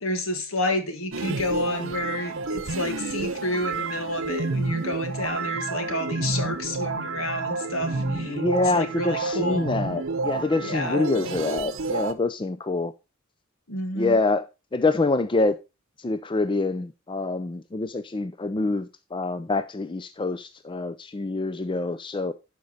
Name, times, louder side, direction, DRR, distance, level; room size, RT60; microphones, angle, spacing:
voice 1, 0.0-9.7 10.6-11.0 13.7-14.2, left 1 dB, 70° left, 1.7 m, -30 dB
sound 1, 1.1-12.1, right 3 dB, 65° right, 0.8 m, -30 dB
voice 2, 7.9-12.9 13.9-14.4 14.7-15.6 16.0-22.3, left 3 dB, 25° left, 0.4 m, -26 dB
11.5 x 5.3 x 4.1 m
head